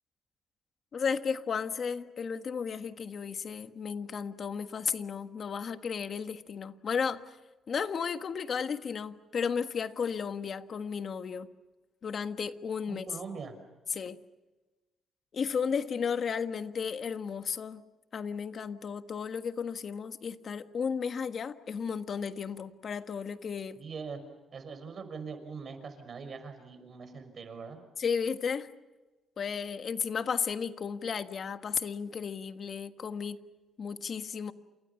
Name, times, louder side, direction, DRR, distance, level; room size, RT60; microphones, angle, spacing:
voice 1, 0.9-7.4 7.7-11.5 12.0-13.1 13.9-14.2 15.3-17.8 18.1-23.8 28.0-28.7 29.4-33.4 33.8-34.5, left 6 dB, 50° left, 1.5 m, -34 dB
voice 2, 12.9-13.5 23.8-24.2 24.5-27.8, right 5 dB, 45° right, 5.7 m, -42 dB
30.0 x 28.0 x 5.8 m
cardioid pair, 105°, 0 cm